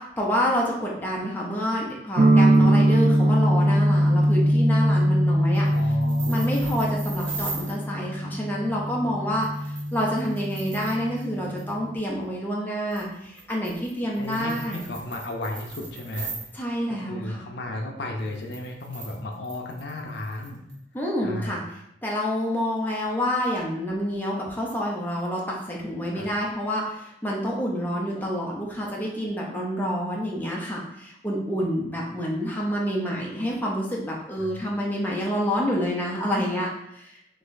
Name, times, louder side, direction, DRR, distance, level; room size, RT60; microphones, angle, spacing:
voice 1, 0.0-5.7 6.3-14.8 16.5-17.5 20.9-21.6 22.0-36.7 36.9-37.1, equal, 10° left, -3 dB, 0.5 m, -28 dB
sound 1, 2.2-11.9, right 1 dB, 45° right, 0.4 m, -22 dB
sound 2, 5.5-7.8 9.4-11.3 11.6-11.7 12.9-16.5 18.2-20.8, right 4 dB, 85° right, 1.0 m, -40 dB
voice 2, 5.6-6.8 14.2-16.3 16.9-20.6 21.2-21.6 26.1-26.3 31.8-31.9 34.4-34.6, left 1 dB, 70° left, 2 dB, 0.6 m, -34 dB
3.9 x 2.9 x 2.5 m, 0.77 s
head